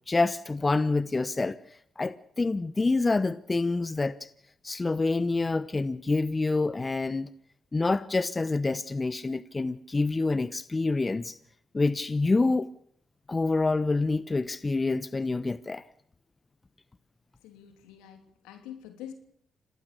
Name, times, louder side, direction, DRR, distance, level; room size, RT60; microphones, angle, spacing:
voice 1, 0.1-1.6 2.0-4.3 4.6-7.3 7.7-11.4 11.7-12.7 13.3-15.8, left 3 dB, 30° left, 1.0 m, -27 dB
voice 2, 17.4-19.1, left 10 dB, 80° left, 3.0 m, -45 dB
27.0 x 18.5 x 6.8 m
hypercardioid pair, 40°, 0 cm